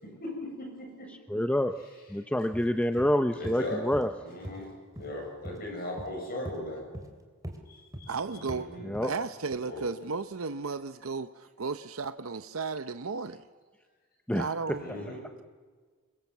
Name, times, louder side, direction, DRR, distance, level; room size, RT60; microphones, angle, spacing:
voice 1, 0.0-1.1 3.3-3.9 4.2-6.9 7.7-8.9 9.7-9.9 14.7-15.3, left 1 dB, 45° left, 1 dB, 7.4 m, -39 dB
voice 2, 1.3-1.8 2.1-4.1 8.8-9.1 14.3-14.5, left 1 dB, 5° left, 7 dB, 0.7 m, -27 dB
sound 1, 2.5-2.7 3.0-3.1 3.4-3.6 3.9-4.1 4.4-4.6 5.0-5.1 5.5-5.6 6.0-6.1 6.5-6.6 6.9-7.1 7.4-7.6 7.9-8.1 8.5-8.6 8.9-9.1 9.5-9.6, equal, 15° right, 2.9 m, -41 dB
voice 3, 8.1-8.7 9.0-13.4 14.3-14.9, right 4 dB, 75° right, 11 dB, 0.8 m, -34 dB
27.0 x 22.5 x 7.4 m, 1.5 s
head